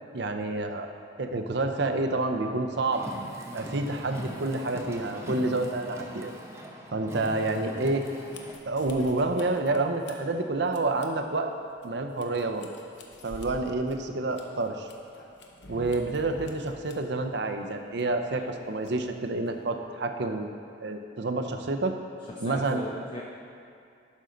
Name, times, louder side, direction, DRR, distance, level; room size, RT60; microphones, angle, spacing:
voice 1, 0.1-0.9 1.2-3.0 3.5-6.3 6.9-8.0 8.7-11.5 11.8-12.7 13.2-14.9 15.7-20.5 20.8-21.9 22.4-22.8, right 2 dB, 60° right, 6 dB, 0.6 m, -28 dB
Car, 2.9-8.6, equal, 15° right, 0.6 m, -41 dB
sound 1, 6.9-19.8, left 2 dB, 65° left, 0.9 m, -50 dB
voice 2, 22.3-23.2, left 1 dB, 25° left, -2 dB, 0.5 m, -38 dB
11.5 x 5.6 x 3.9 m, 2.5 s
head